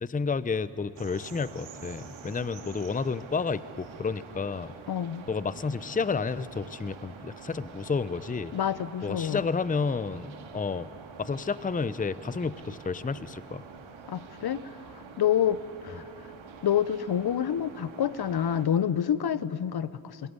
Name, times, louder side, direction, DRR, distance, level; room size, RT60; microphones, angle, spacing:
voice 1, 0.0-4.7 5.3-8.5 9.0-10.9 11.2-13.6, left 4 dB, 15° left, 16 dB, 0.7 m, -31 dB
sound 1, 1.0-18.7, right 6 dB, 75° right, 2.6 m, -47 dB
voice 2, 4.9-5.3 8.5-9.4 14.1-14.7 15.2-16.0 16.6-20.2, left 9 dB, 55° left, 16 dB, 0.9 m, -27 dB
23.5 x 18.0 x 9.8 m, 2.7 s
supercardioid pair, 50°, 47 cm